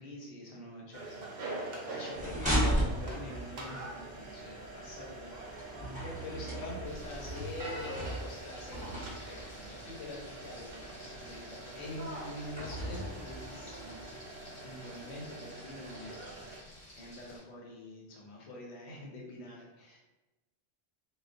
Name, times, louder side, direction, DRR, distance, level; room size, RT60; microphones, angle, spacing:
voice 1, 0.0-14.0 14.6-16.2 17.0-20.0, left 1 dB, 90° left, -3 dB, 1.0 m, -45 dB
sound 1, 0.9-16.6, right 2 dB, 70° right, 0.8 m, -45 dB
sound 2, 2.1-14.0, equal, 10° right, 0.9 m, -38 dB
Frying (food), 6.8-17.4, left 1 dB, 30° left, 0.7 m, -52 dB
2.3 x 2.2 x 2.4 m, 1.1 s
omnidirectional pair, 1.1 m